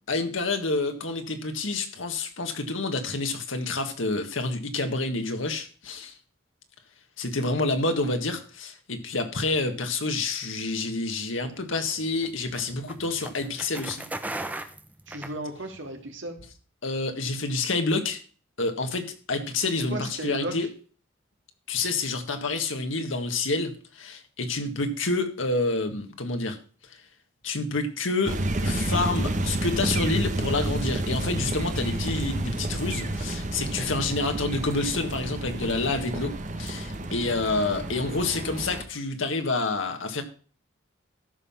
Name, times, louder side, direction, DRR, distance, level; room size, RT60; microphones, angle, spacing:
voice 1, 0.1-6.2 7.2-14.1 16.8-18.2 18.6-20.7 21.7-26.6 27.4-40.2, left 3 dB, 80° left, 6 dB, 1.7 m, -28 dB
sound 1, 11.5-15.9, right 1 dB, 10° right, 0.8 m, -38 dB
voice 2, 15.1-16.4 19.9-20.6, equal, 70° right, 4 dB, 2.1 m, -34 dB
sound 2, 28.3-38.8, right 1 dB, 40° right, 1.1 m, -30 dB
13.5 x 5.7 x 5.7 m, 0.40 s
head